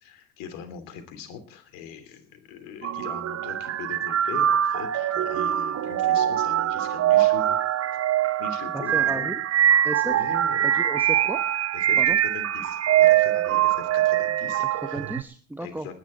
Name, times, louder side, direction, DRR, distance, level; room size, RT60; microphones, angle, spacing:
voice 1, 0.0-7.6 8.4-9.3 10.0-10.7 11.7-15.0 15.6-15.9, left 6 dB, 70° left, 9 dB, 2.9 m, -40 dB
sound 1, 2.8-15.2, right 11 dB, 45° right, 1.0 m, -23 dB
voice 2, 8.7-9.3 9.8-10.1 10.7-11.4 12.0-12.2 14.6-15.9, right 1 dB, 5° right, 10 dB, 1.1 m, -34 dB
20.0 x 10.0 x 4.3 m, 0.40 s
hypercardioid pair, 65°, 35 cm